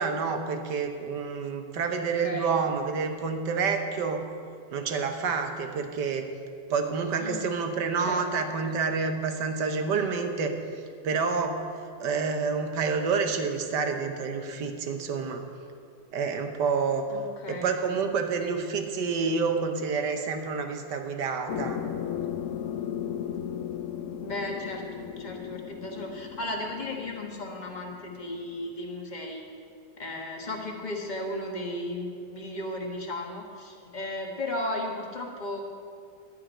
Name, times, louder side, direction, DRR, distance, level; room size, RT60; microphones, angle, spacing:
voice 1, 0.0-4.3 4.7-6.3 6.7-10.6 11.0-11.6 12.0-15.4 16.1-17.1 17.5-21.8, right 5 dB, 70° right, 5 dB, 1.6 m, -28 dB
voice 2, 2.2-2.5 7.2-7.5 8.0-8.5 17.1-17.7 24.2-29.4 30.0-35.6, left 1 dB, 25° left, 1 dB, 1.3 m, -35 dB
sound 1, 21.5-28.7, left 9 dB, 65° left, 0.8 m, -36 dB
11.5 x 5.7 x 8.8 m, 2.3 s
omnidirectional pair, 2.0 m